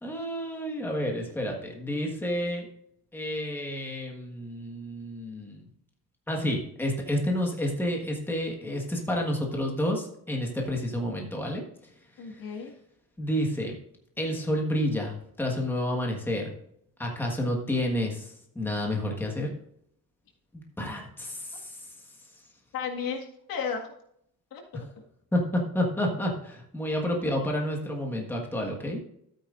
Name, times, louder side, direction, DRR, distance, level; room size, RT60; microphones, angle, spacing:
voice 1, 0.0-2.7 3.1-5.7 6.3-11.6 13.2-13.8 14.2-16.5 17.0-19.5 20.8-21.8 24.7-24.8 25.3-29.0, left 1 dB, 5° left, 0 dB, 1.5 m, -30 dB
voice 2, 12.2-12.7 22.7-23.9 24.5-24.9, left 6 dB, 80° left, 2 dB, 1.9 m, -34 dB
12.5 x 8.9 x 2.5 m, 0.70 s
cardioid pair, 175°, 34 cm